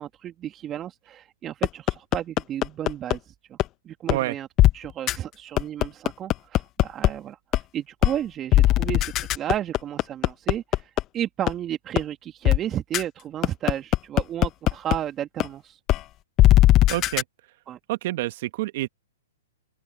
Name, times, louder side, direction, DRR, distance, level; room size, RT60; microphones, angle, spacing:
voice 1, 0.0-3.2 3.5-3.6 3.9-4.5 4.7-15.8 17.7-17.8, right 11 dB, 25° right, 2.1 m, -33 dB
sound 1, 1.6-3.2 3.6-3.7 4.1-4.2 4.6-4.7 5.1-5.2 5.6-7.1 7.5-7.6 8.0-8.1 8.5-11.0 11.5-11.6 12.0-12.1 12.4-12.6 12.9-13.0 13.4-15.0 15.4-15.5 15.9-16.0 16.4-17.2, left 15 dB, 30° left, 0.9 m, -18 dB
voice 2, 16.9-17.2 17.9-18.9, right 17 dB, 55° right, 1.3 m, -27 dB
open air
hypercardioid pair, 125°, 0 cm